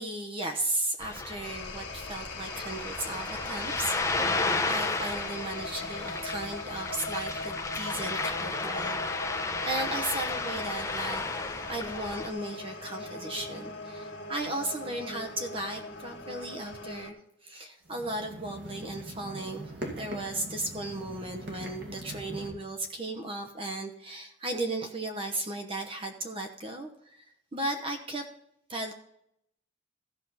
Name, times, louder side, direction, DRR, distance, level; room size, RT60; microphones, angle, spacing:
voice 1, 0.0-28.3 28.7-28.9, right 2 dB, 30° right, 5 dB, 0.9 m, -36 dB
Ocean, 1.0-12.3, left 3 dB, 15° left, 0.7 m, -33 dB
sound 1, 1.4-17.1, left 2 dB, 70° left, 1.7 m, -40 dB
sound 2, 17.8-22.5, right 1 dB, 70° right, 2.2 m, -42 dB
15.0 x 6.2 x 4.1 m, 0.77 s
head